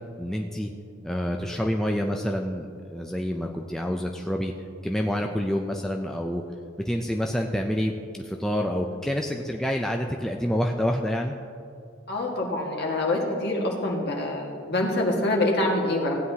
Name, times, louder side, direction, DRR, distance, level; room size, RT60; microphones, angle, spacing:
voice 1, 0.2-0.7 1.0-4.5 4.8-6.4 6.9-11.4, equal, ahead, 1 dB, 0.3 m, -27 dB
voice 2, 12.1-16.2, left 2 dB, 55° left, -1 dB, 1.7 m, -25 dB
15.5 x 9.4 x 2.8 m, 2.4 s
head